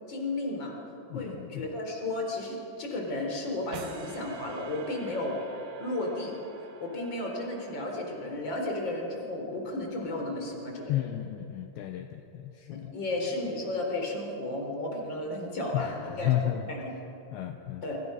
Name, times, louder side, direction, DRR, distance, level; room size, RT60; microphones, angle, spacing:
voice 1, 0.1-0.8 1.1-5.3 5.8-6.3 6.8-11.0 12.7-16.3 16.7-16.9 17.8-18.0, left 2 dB, 25° left, 1 dB, 4.0 m, -33 dB
voice 2, 1.1-1.7 10.9-12.9 15.7-16.8 17.3-17.8, left 13 dB, 80° left, 6 dB, 2.7 m, -32 dB
sound 1, 3.7-8.9, right 4 dB, 60° right, 2.5 m, -48 dB
27.0 x 25.5 x 5.8 m, 3.0 s
omnidirectional pair, 5.9 m